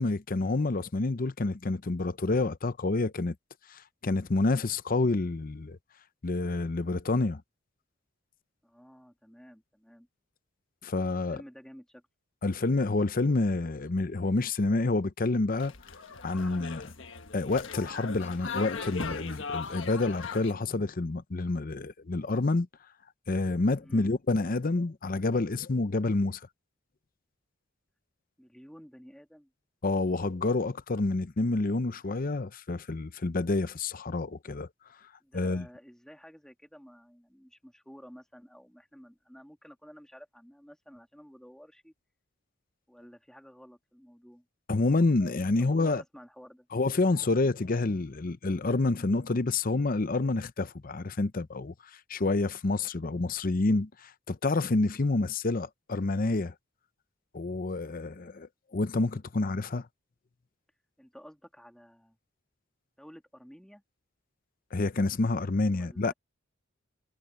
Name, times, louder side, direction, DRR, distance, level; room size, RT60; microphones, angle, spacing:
voice 1, 0.0-3.3 3.7-5.8 6.2-7.4 10.8-11.4 12.4-15.7 16.2-16.9 17.3-22.7 23.3-26.4 29.8-34.7 35.3-35.7 44.7-46.0 46.7-51.7 52.1-56.5 57.3-59.9 64.7-66.1, left 2 dB, 45° left, 0.7 m, -28 dB
voice 2, 8.6-10.1 11.1-12.0 23.8-24.1 28.4-29.5 35.2-41.9 42.9-44.5 45.6-46.7 61.0-62.2 63.0-63.8 65.8-66.1, equal, 5° left, 2.3 m, -52 dB
sound 1, 15.5-20.5, left 4 dB, 70° left, 1.5 m, -39 dB
head